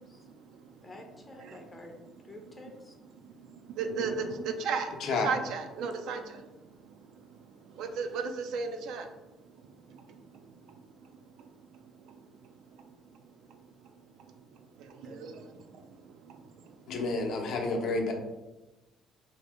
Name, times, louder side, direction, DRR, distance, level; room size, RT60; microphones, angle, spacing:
voice 1, 0.0-0.9 1.4-1.7 3.1-17.0, right 5 dB, 75° right, 6 dB, 0.3 m, -39 dB
voice 2, 0.8-2.0 2.2-2.9 4.0-4.4 15.1-15.4, left 2 dB, 20° left, 2 dB, 0.5 m, -49 dB
voice 3, 16.9-18.1, left 3 dB, 65° left, 2 dB, 0.6 m, -30 dB
2.7 x 2.7 x 3.3 m, 1.1 s
cardioid pair, 100°, 0 cm